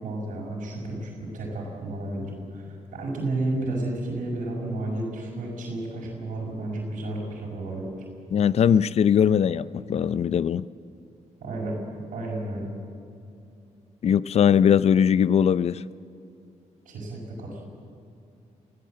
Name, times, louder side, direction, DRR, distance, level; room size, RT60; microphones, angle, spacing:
voice 1, 0.0-8.0 11.4-11.8 12.1-12.7 16.8-17.6, right 2 dB, 85° right, 5.1 m, -32 dB
voice 2, 8.3-10.7 14.0-15.8, left 8 dB, 50° left, 0.5 m, -20 dB
23.5 x 16.0 x 7.7 m
cardioid pair, 115°, 13 cm